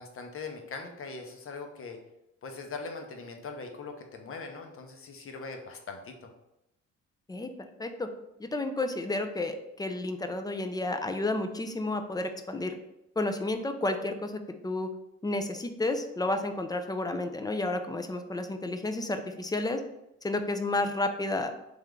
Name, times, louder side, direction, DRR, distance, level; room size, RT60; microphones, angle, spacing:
voice 1, 0.0-2.0 2.4-6.3, left 4 dB, 45° left, 4 dB, 0.8 m, -41 dB
voice 2, 8.4-12.8 13.2-14.3 14.6-14.9 15.2-19.8 20.2-21.5, left 2 dB, 15° left, 7 dB, 0.4 m, -31 dB
3.4 x 2.9 x 3.7 m, 0.88 s
cardioid pair, 90°, 30 cm